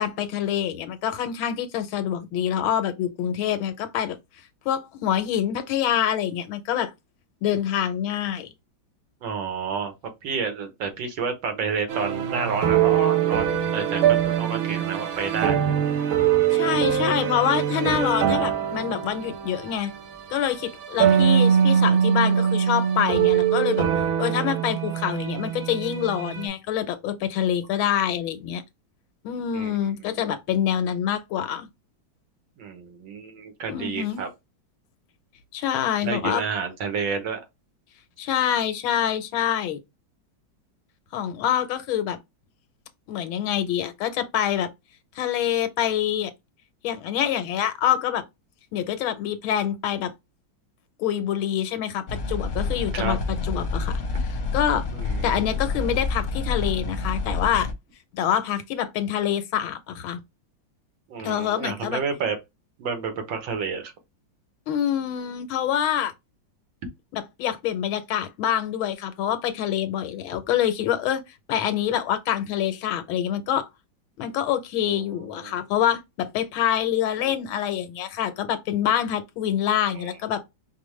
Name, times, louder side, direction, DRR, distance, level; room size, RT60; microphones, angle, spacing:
voice 1, 0.0-4.2 4.6-6.9 7.4-8.5 16.5-19.9 20.3-23.9 24.2-28.6 29.2-31.7 33.7-34.2 35.5-36.4 38.2-39.8 41.1-42.2 43.1-44.7 45.2-46.3 46.8-48.2 48.7-50.1 51.0-53.9 54.2-54.8 55.2-57.7 58.1-60.2 61.2-62.0 64.7-66.1 67.1-71.2 71.5-73.7 74.2-80.4, left 10 dB, 85° left, 1.5 m, -26 dB
voice 2, 9.2-9.9 10.2-15.6 21.0-22.0 29.5-29.7 30.1-30.3 32.6-34.3 36.0-37.4 52.9-53.2 54.9-55.3 61.1-62.4 62.8-63.9 74.9-75.5 79.9-80.1, right 5 dB, 70° right, 1.7 m, -30 dB
sound 1, 11.9-26.5, right 8 dB, 90° right, 1.6 m, -23 dB
sound 2, 52.1-57.7, left 3 dB, 55° left, 0.9 m, -28 dB
5.2 x 2.2 x 3.1 m
omnidirectional pair, 2.2 m